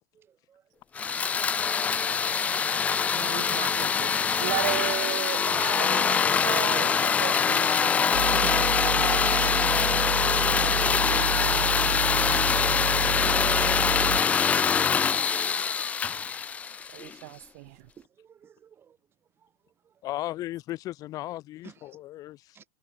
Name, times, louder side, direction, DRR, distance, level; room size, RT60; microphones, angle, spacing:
voice 1, 0.1-0.7 1.0-1.3 8.3-8.6 17.0-17.1 18.0-19.0 19.4-20.0 21.6-22.0 22.5-22.7, right 8 dB, 20° right, 6.1 m, -51 dB
sound 1, 0.9-17.1, left 6 dB, 15° left, 0.3 m, -24 dB
voice 2, 3.1-4.1 4.4-8.4 9.0-9.6 10.5-12.4 16.9-17.8, right 26 dB, 50° right, 0.5 m, -36 dB
sound 2, 8.1-14.2, right 12 dB, 85° right, 2.6 m, -31 dB
voice 3, 20.0-22.6, left 15 dB, 35° left, 1.5 m, -36 dB
supercardioid pair, 140°, 11 cm